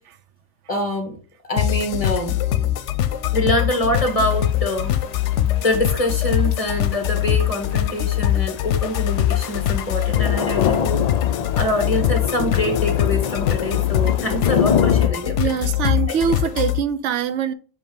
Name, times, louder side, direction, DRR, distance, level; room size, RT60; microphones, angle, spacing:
voice 1, 0.7-1.1 1.5-2.4 3.3-4.9 5.6-11.1 11.5-15.4 16.1-16.2, left 1 dB, 30° left, 1.5 m, -24 dB
sound 1, 1.6-16.8, left 12 dB, 90° left, 0.9 m, -22 dB
Thunder / Rain, 3.9-15.1, left 8 dB, 70° left, 0.3 m, -26 dB
voice 2, 15.4-17.5, right 8 dB, 85° right, 0.9 m, -23 dB
7.3 x 2.8 x 5.2 m
omnidirectional pair, 1.2 m